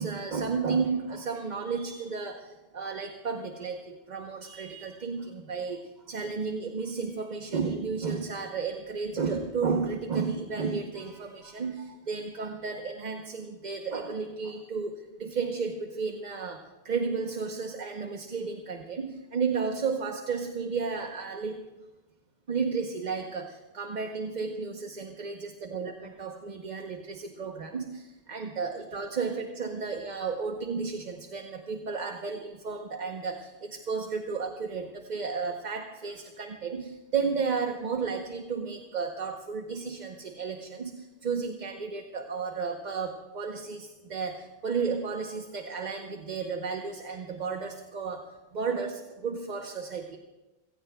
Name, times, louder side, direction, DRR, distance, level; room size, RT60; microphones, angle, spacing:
voice 1, 0.0-5.8 6.1-21.6 22.5-48.2 48.5-50.2, right 5 dB, 45° right, 4 dB, 1.0 m, -33 dB
28.0 x 17.0 x 2.2 m, 1.1 s
omnidirectional pair, 1.1 m